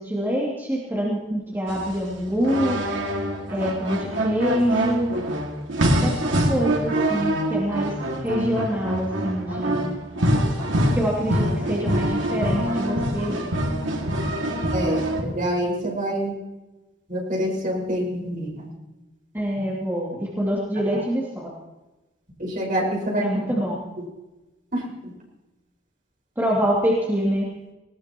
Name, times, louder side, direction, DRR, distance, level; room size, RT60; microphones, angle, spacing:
voice 1, 0.0-2.8 3.5-5.2 6.0-8.0 8.2-10.0 10.9-13.4 19.3-21.5 23.2-23.8 26.4-27.5, equal, 10° right, -5 dB, 2.7 m, -25 dB
sound 1, 1.7-15.2, right 1 dB, 80° right, 2.3 m, -25 dB
voice 2, 14.7-16.4 17.1-18.7 19.6-19.7 20.9-21.0 22.4-23.3 24.7-25.1, equal, 45° right, -1 dB, 5.4 m, -26 dB
19.5 x 18.5 x 3.1 m, 1.1 s
head